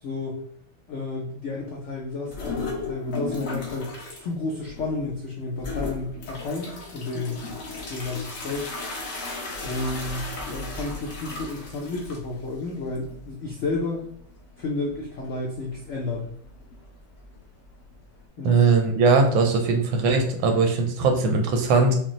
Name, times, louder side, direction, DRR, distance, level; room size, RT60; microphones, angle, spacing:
voice 1, 0.0-0.4 0.9-7.5 7.9-8.7 9.6-14.0 14.6-16.3 18.4-18.6, left 3 dB, 80° left, -2 dB, 0.6 m, -31 dB
Weak Toilet Flush, 2.3-4.2 4.6-5.1 5.6-18.2, left 3 dB, 50° left, 1.1 m, -36 dB
voice 2, 18.4-21.9, right 4 dB, 85° right, 4 dB, 1.5 m, -20 dB
5.3 x 2.1 x 3.0 m, 0.66 s
omnidirectional pair, 2.1 m